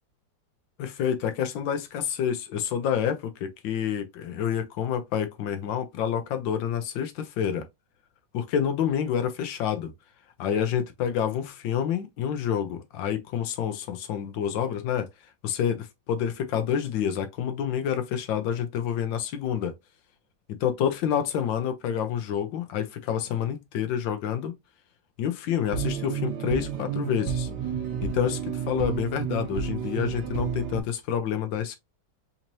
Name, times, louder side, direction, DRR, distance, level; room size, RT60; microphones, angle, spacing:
voice 1, 0.8-7.6 8.3-9.9 10.4-15.1 15.4-19.7 20.6-24.5 25.2-27.5 28.0-31.7, left 8 dB, 90° left, 1.4 m, -28 dB
sound 1, 25.7-30.8, right 7 dB, 70° right, 1.3 m, -31 dB
4.2 x 3.0 x 2.6 m
omnidirectional pair, 2.0 m